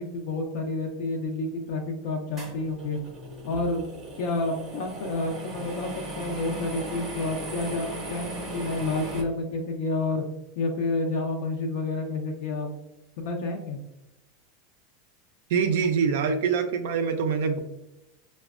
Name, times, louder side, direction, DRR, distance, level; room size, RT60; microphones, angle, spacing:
voice 1, 0.0-3.0 3.4-3.8 4.2-5.9 6.2-10.2 10.6-12.7 13.2-13.8, left 2 dB, 60° left, 2 dB, 0.5 m, -29 dB
sound 1, 2.4-9.2, right 1 dB, 15° right, 0.6 m, -38 dB
voice 2, 15.5-17.6, right 6 dB, 70° right, 5 dB, 0.3 m, -24 dB
4.9 x 2.1 x 2.3 m, 0.96 s
supercardioid pair, 165°, 0 cm